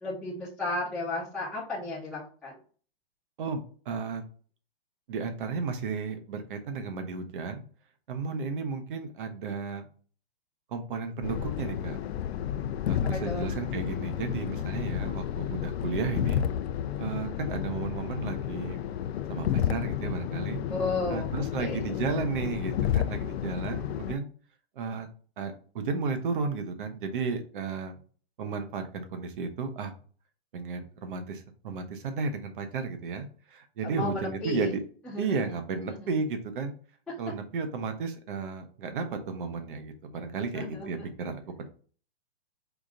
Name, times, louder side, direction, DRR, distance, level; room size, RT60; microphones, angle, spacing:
voice 1, 0.0-2.5 13.0-13.5 20.7-22.0 33.8-34.7 35.0-35.5 35.9-36.1 40.5-40.9, left 2 dB, ahead, -9 dB, 0.7 m, -34 dB
voice 2, 3.4-4.2 5.1-7.6 8.1-9.8 10.7-12.0 12.9-16.4 17.0-18.8 19.3-20.6 21.1-24.3 24.8-25.1 25.4-28.0 28.4-29.9 30.5-34.8 35.2-36.7 37.2-41.7, right 4 dB, 55° right, 7 dB, 1.0 m, -33 dB
sound 1, 11.2-24.1, left 10 dB, 80° left, 0.5 m, -31 dB
5.0 x 2.6 x 3.7 m, 0.41 s
hypercardioid pair, 160°, 31 cm